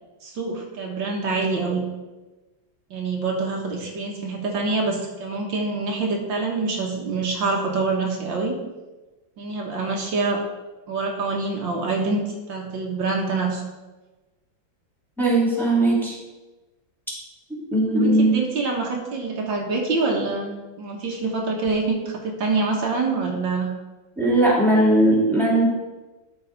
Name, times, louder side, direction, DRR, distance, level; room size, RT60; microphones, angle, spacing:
voice 1, 0.2-1.8 2.9-8.6 9.4-10.4 10.9-13.6 18.0-23.7, right 3 dB, 75° right, 0 dB, 2.1 m, -26 dB
voice 2, 15.2-16.2 17.7-18.3 24.2-25.7, right 1 dB, ahead, -6 dB, 2.4 m, -18 dB
12.0 x 5.6 x 4.1 m, 1.2 s
omnidirectional pair, 2.1 m